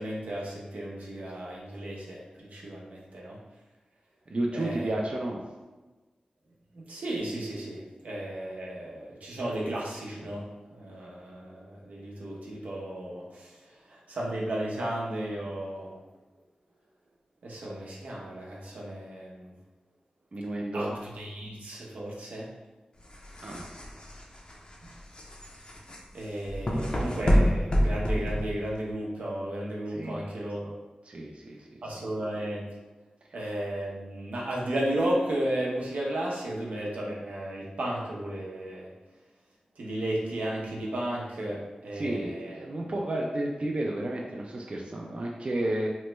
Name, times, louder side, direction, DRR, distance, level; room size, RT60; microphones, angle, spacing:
voice 1, 0.0-3.4 4.5-4.9 6.7-10.4 10.7-13.5 14.1-16.0 17.4-19.5 20.7-20.9 21.2-22.5 26.1-30.7 31.8-32.6 33.3-38.9 39.8-42.6, right 1 dB, 90° right, -4 dB, 0.7 m, -34 dB
voice 2, 4.3-5.4 20.3-21.0 23.4-23.7 29.9-30.3 31.0-32.1 34.4-34.6 41.9-45.9, right 1 dB, 50° right, -1 dB, 0.4 m, -32 dB
sound 1, 23.0-28.9, equal, 40° left, 0.5 m, -28 dB
3.0 x 2.2 x 3.1 m, 1.2 s
wide cardioid pair, 65°, 3 cm